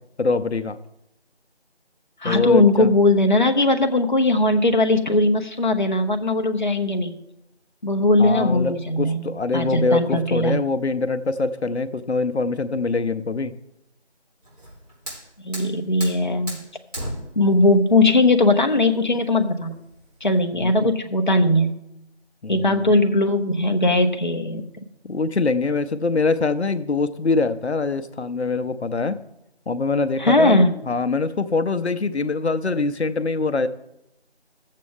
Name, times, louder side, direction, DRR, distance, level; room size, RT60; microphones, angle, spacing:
voice 1, 0.2-0.8 2.2-2.9 8.2-13.5 20.5-20.9 22.4-22.9 25.0-29.2 29.7-33.7, left 3 dB, 80° left, 11 dB, 0.7 m, -24 dB
voice 2, 2.2-7.2 7.8-10.6 15.4-16.6 17.4-19.7 20.2-21.8 22.5-24.6 30.2-30.7, left 2 dB, 45° left, 4 dB, 0.8 m, -19 dB
Fire, 14.4-20.4, equal, 35° right, 4.2 m, -38 dB
13.5 x 7.5 x 3.6 m, 0.86 s
figure-of-eight pair, 180°, 33 cm